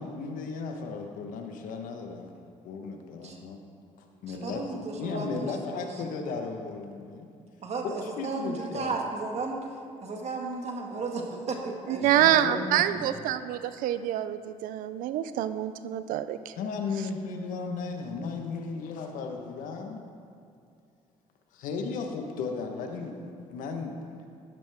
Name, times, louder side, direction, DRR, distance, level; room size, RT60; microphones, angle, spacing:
voice 1, 0.0-2.3 2.6-3.6 4.0-7.3 8.0-9.0 12.0-13.2 16.5-20.0 21.5-23.9, left 4 dB, 80° left, 3 dB, 1.2 m, -35 dB
voice 2, 4.3-5.9 7.6-9.7 10.0-12.4, right 3 dB, 50° right, 2 dB, 1.7 m, -34 dB
voice 3, 12.0-16.5, right 11 dB, 80° right, 12 dB, 0.5 m, -26 dB
12.5 x 11.0 x 3.6 m, 2.4 s
supercardioid pair, 75°, 14 cm